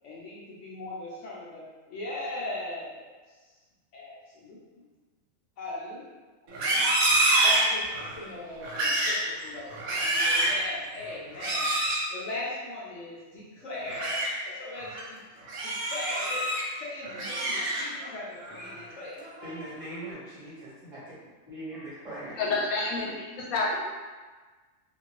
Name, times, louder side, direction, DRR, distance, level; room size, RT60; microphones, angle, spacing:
voice 1, 0.0-3.1 3.4-3.5 3.9-4.9 5.6-6.0 7.4-11.7 12.1-16.5 16.7-19.2, left 2 dB, 65° left, -6 dB, 0.9 m, -39 dB
Livestock farm animals working animals, 6.5-8.2 8.6-9.2 9.7-10.6 11.4-12.0 13.7-14.3 14.8-15.0 15.5-16.6 17.0-18.1 18.5-18.8 19.2-19.6, right 1 dB, 90° right, 1.1 m, -26 dB
voice 2, 19.4-21.2 21.5-22.4, right 1 dB, 25° right, -12 dB, 1.1 m, -40 dB
voice 3, 22.4-23.7, left 3 dB, 90° left, -3 dB, 1.1 m, -28 dB
2.7 x 2.5 x 3.0 m, 1.4 s
omnidirectional pair, 1.4 m